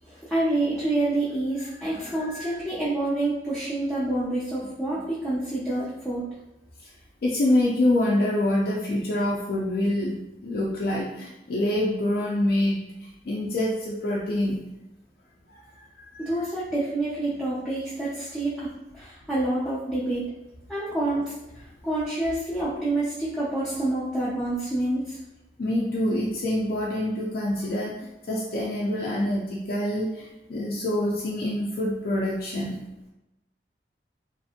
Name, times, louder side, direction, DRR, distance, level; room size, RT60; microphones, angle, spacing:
voice 1, 0.0-6.2 16.2-20.3 20.7-21.2 21.5-25.2, right 2 dB, 5° right, -10 dB, 0.5 m, -27 dB
voice 2, 2.0-2.5 7.2-14.6 15.5-16.3 25.6-32.8, left 1 dB, 55° left, -5 dB, 0.4 m, -26 dB
2.5 x 2.5 x 2.5 m, 0.94 s
head